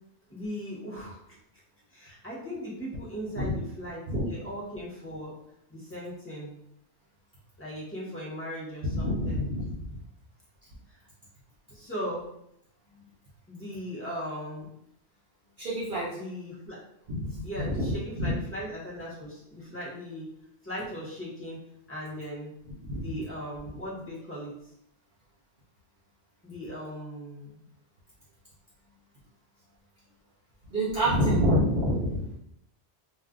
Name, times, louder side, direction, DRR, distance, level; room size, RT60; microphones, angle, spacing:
voice 1, 0.3-1.2 1.9-5.3 5.7-6.6 7.6-9.4 10.9-11.0 11.7-12.3 13.5-14.7 16.1-16.8 17.4-20.3 20.6-21.6 21.9-22.5 22.9-24.7 26.4-27.6, equal, 15° left, -6 dB, 0.9 m, -38 dB
voice 2, 8.9-9.9 15.6-16.2 17.1-18.4 22.9-23.1 30.7-32.4, equal, 55° right, -7 dB, 0.8 m, -27 dB
2.4 x 2.1 x 3.6 m, 0.76 s
omnidirectional pair, 1.1 m